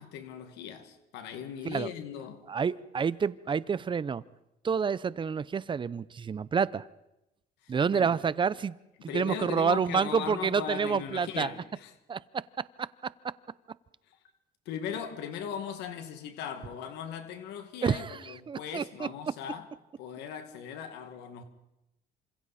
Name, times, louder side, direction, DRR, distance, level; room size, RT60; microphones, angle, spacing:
voice 1, 0.0-2.4 7.6-8.1 9.1-11.9 14.7-19.7 20.0-21.4, left 8 dB, 90° left, 2.1 m, -38 dB
voice 2, 2.5-4.2 4.6-6.9 7.7-8.8 9.0-11.5 12.1-12.2 17.8-19.1, right 6 dB, 30° right, 0.7 m, -28 dB
27.5 x 26.0 x 4.3 m
cardioid pair, 110°, 17 cm